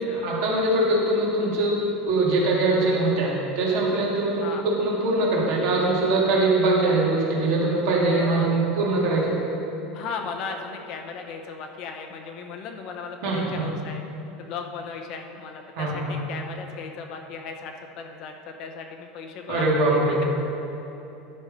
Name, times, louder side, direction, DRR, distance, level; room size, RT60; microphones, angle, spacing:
voice 1, 0.2-1.8 2.1-9.4 13.2-13.6 15.8-15.9 19.5-20.3, right 2 dB, 65° right, -4 dB, 2.2 m, -22 dB
voice 2, 8.1-8.5 9.9-14.0 14.4-20.2, left 5 dB, 45° left, 4 dB, 0.8 m, -36 dB
11.0 x 5.3 x 5.2 m, 2.9 s
supercardioid pair, 160°, 0 cm